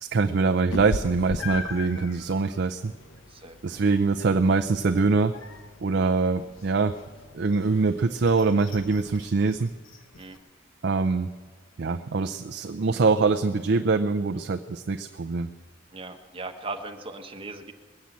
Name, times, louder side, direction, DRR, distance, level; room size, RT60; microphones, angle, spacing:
voice 1, 0.0-2.9 3.6-5.3 5.8-7.0 7.3-9.7 10.8-11.3 11.8-15.5, right 4 dB, 60° right, 6 dB, 0.5 m, -24 dB
Meow, 0.7-10.4, left 2 dB, 85° left, 1.0 m, -40 dB
voice 2, 3.3-3.8 10.2-10.4 15.9-17.7, right 3 dB, 30° right, 5 dB, 1.0 m, -38 dB
20.5 x 7.5 x 8.3 m, 1.4 s
head